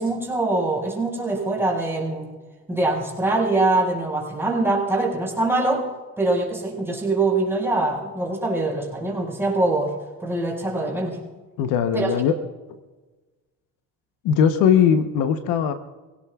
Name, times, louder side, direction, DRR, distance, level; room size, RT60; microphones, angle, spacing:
voice 1, 0.0-2.3 2.7-5.8 6.2-9.9 10.2-11.2 11.9-12.1, right 2 dB, 5° right, -2 dB, 5.3 m, -23 dB
voice 2, 11.6-12.3 14.2-15.7, left 8 dB, 80° left, 9 dB, 1.0 m, -19 dB
26.5 x 17.0 x 2.4 m, 1.3 s
cardioid pair, 105°, 34 cm